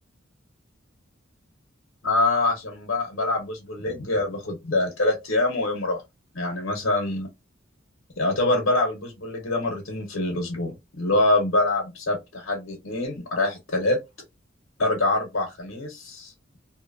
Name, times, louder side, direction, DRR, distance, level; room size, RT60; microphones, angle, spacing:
voice 1, 2.0-6.0 6.3-7.3 8.2-10.7 11.0-14.0 14.8-16.3, left 2 dB, 80° left, 0.9 m, -25 dB
2.7 x 2.1 x 2.5 m
head